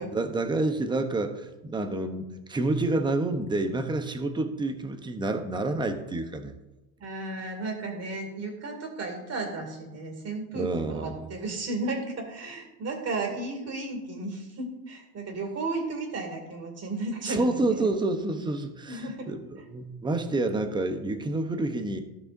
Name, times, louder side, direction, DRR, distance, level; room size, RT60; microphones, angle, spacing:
voice 1, 0.0-6.5 10.5-11.3 17.2-22.0, right 2 dB, 10° right, 7 dB, 0.7 m, -28 dB
voice 2, 7.0-17.8 18.9-19.3, right 2 dB, 30° right, 3 dB, 2.4 m, -34 dB
15.0 x 6.2 x 2.6 m, 1.0 s
supercardioid pair, 120°, 48 cm